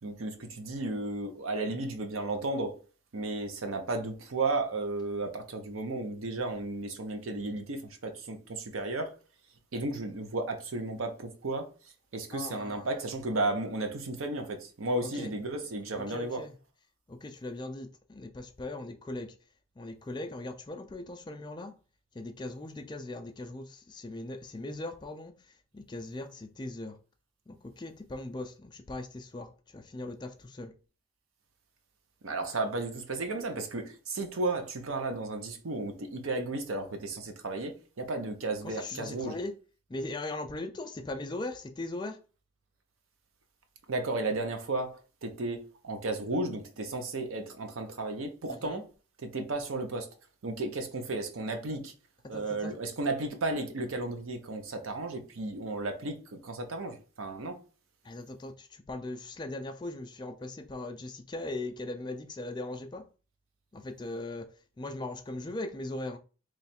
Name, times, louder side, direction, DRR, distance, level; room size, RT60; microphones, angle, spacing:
voice 1, 0.0-2.8 3.1-9.1 9.7-11.7 12.1-16.4 32.2-37.7 38.0-39.4 43.9-48.8 49.2-50.1 50.4-51.9 52.3-57.6, right 2 dB, 85° right, 0.7 m, -34 dB
voice 2, 12.3-12.9 15.0-15.3 15.9-16.5 17.1-19.3 19.8-21.7 22.1-25.3 25.7-27.0 27.5-30.7 38.6-39.5 39.9-42.2 48.5-48.8 52.3-52.7 58.0-63.1 63.7-66.2, left 2 dB, 20° left, 0.3 m, -39 dB
3.1 x 2.3 x 4.1 m
head